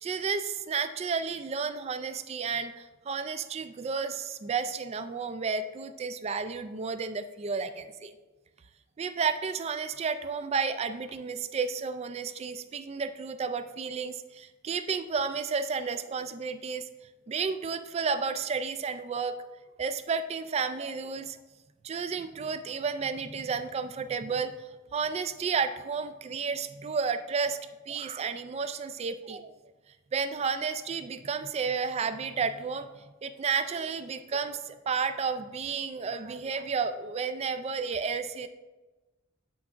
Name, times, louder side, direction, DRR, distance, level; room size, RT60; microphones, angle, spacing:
voice 1, 0.0-8.1 9.0-16.9 17.3-19.4 19.8-21.4 21.8-24.5 24.9-27.6 27.9-29.5 30.1-32.9 33.2-38.5, right 5 dB, 30° right, 12 dB, 0.3 m, -32 dB
8.4 x 5.8 x 2.5 m, 1.2 s
head